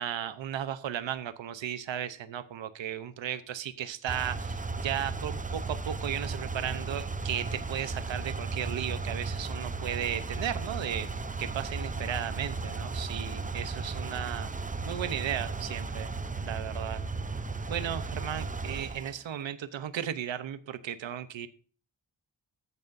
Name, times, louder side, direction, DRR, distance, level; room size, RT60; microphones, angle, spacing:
voice 1, 0.0-14.5 14.8-16.1 16.4-17.0 17.7-21.5, right 10 dB, 85° right, 12 dB, 0.9 m, -35 dB
sound 1, 4.1-19.2, right 3 dB, 20° right, 0.6 m, -35 dB
14.0 x 9.3 x 2.6 m, 0.40 s
wide cardioid pair, 125°, 44 cm